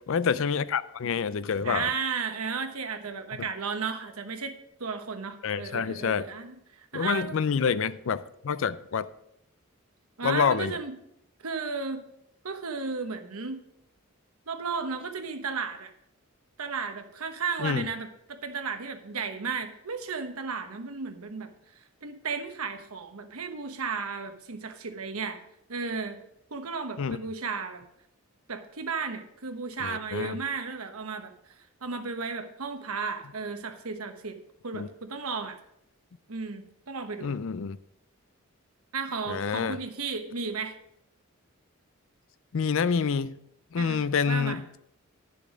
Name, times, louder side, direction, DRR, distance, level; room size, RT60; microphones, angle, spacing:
voice 1, 0.1-1.9 5.4-6.2 6.9-9.1 10.2-10.8 17.6-17.9 27.0-27.2 29.8-30.4 34.7-34.9 37.2-37.8 39.3-39.8 42.5-43.4 43.7-44.6, left 6 dB, 65° left, 0.4 m, -27 dB
voice 2, 1.6-4.5 4.8-7.4 10.2-10.9 11.4-12.1 12.4-13.6 14.5-15.9 16.6-21.5 22.0-25.4 25.7-26.2 26.5-27.8 28.5-31.3 31.8-34.4 34.6-35.6 36.3-37.3 38.9-40.8 43.8-44.6, right 5 dB, 90° right, 1.1 m, -34 dB
10.5 x 6.9 x 5.0 m
head